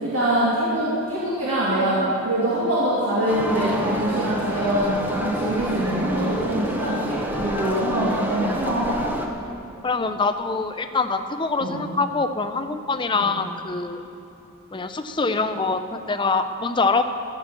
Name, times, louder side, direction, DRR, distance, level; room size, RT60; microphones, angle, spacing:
voice 1, 0.0-9.0 11.6-11.8 13.1-13.3, right 1 dB, 65° right, -9 dB, 2.3 m, -24 dB
sound 1, 3.3-9.3, equal, 10° right, 0.9 m, -28 dB
voice 2, 9.8-14.0 14.7-17.1, left 4 dB, 20° left, 8 dB, 0.5 m, -24 dB
14.5 x 6.2 x 7.4 m, 2.7 s
head